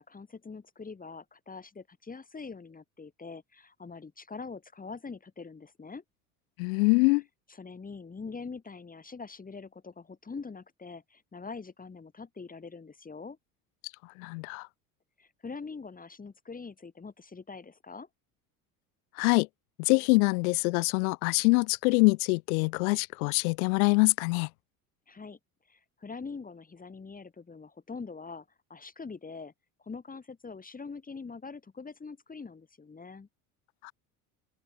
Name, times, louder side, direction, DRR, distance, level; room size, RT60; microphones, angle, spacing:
voice 1, 0.0-6.0 7.5-13.4 15.2-18.1 25.1-25.4 25.7-28.4 28.7-29.5 29.8-33.3, left 4 dB, 20° left, 1.6 m, -43 dB
voice 2, 6.6-7.2 14.2-14.7 19.2-19.5 19.8-24.5 33.8-33.9, left 30 dB, 70° left, 0.6 m, -24 dB
open air
hypercardioid pair, 70°, 44 cm